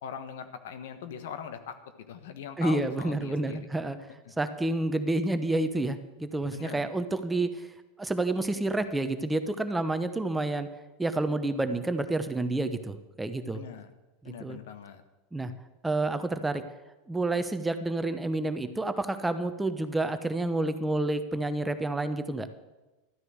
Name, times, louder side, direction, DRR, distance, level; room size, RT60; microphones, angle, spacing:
voice 1, 0.0-1.8 2.1-3.6 6.5-6.9 13.5-13.9 14.2-15.0, left 7 dB, 70° left, 10 dB, 1.3 m, -41 dB
voice 2, 2.6-4.0 4.4-10.7 11.0-13.6 14.2-14.6 15.3-15.5 15.8-16.6 17.1-22.5, right 2 dB, 10° right, 10 dB, 1.0 m, -29 dB
13.0 x 9.6 x 6.5 m, 1.1 s
hypercardioid pair, 100°, 0 cm